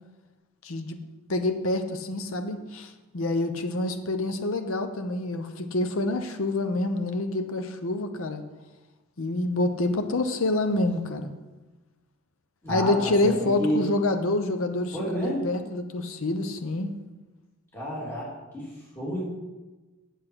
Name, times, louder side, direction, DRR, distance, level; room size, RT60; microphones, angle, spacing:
voice 1, 0.6-1.0 1.3-8.4 9.2-11.3 12.7-16.9, left 2 dB, 70° left, 7 dB, 0.8 m, -27 dB
voice 2, 12.6-13.8 14.9-15.4 17.7-18.7 18.9-19.4, equal, 10° left, -7 dB, 3.0 m, -30 dB
8.2 x 7.9 x 6.3 m, 1.1 s
head